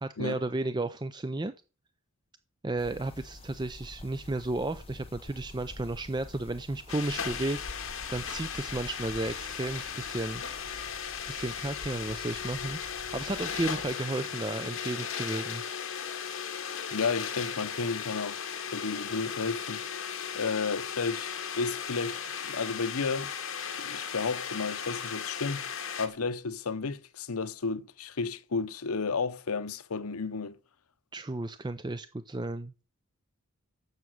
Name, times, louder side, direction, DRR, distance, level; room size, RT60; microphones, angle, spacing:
voice 1, 0.0-1.5 2.6-10.4 11.3-12.8 13.1-15.6 31.1-32.7, right 2 dB, 20° right, 0.5 m, -33 dB
sound 1, 2.8-13.9, left 2 dB, 25° left, 0.7 m, -48 dB
sound 2, 6.9-26.1, left 7 dB, 65° left, 1.9 m, -37 dB
voice 2, 16.9-18.4 18.7-19.8 20.3-23.3 23.8-25.7 26.0-30.6, left 4 dB, 85° left, 0.8 m, -32 dB
11.0 x 7.4 x 6.3 m
head